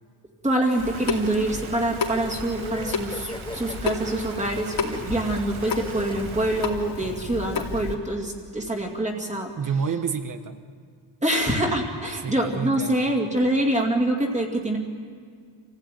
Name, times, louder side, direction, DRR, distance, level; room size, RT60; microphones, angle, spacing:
voice 1, 0.4-9.5 11.2-14.8, right 1 dB, 15° right, 0 dB, 2.4 m, -25 dB
sound 1, 0.7-6.7, right 7 dB, 70° right, 1.5 m, -42 dB
Water tap faucet / Sink (filling or washing) / Drip, 0.8-7.9, left 4 dB, 65° left, 2.9 m, -32 dB
sound 2, 2.5-7.1, left 2 dB, 10° left, 0.7 m, -38 dB
voice 2, 9.6-10.6 12.2-13.3, right 6 dB, 40° right, 9 dB, 1.3 m, -29 dB
27.5 x 16.0 x 9.3 m, 2.1 s
wide cardioid pair, 180°, 50 cm